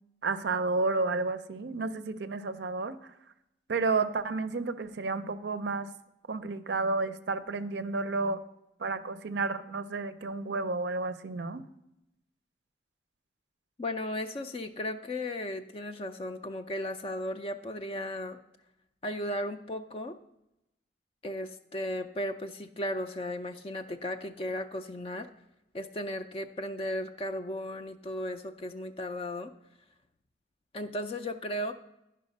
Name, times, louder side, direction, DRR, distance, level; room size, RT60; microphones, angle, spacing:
voice 1, 0.2-3.0 3.7-5.9 6.3-8.4 8.8-11.6, right 3 dB, 65° right, 11 dB, 0.5 m, -31 dB
voice 2, 13.8-18.4 19.0-20.2 21.2-25.3 25.7-29.5 30.7-31.7, left 1 dB, 30° left, 8 dB, 0.3 m, -35 dB
10.5 x 5.5 x 5.2 m, 0.87 s
head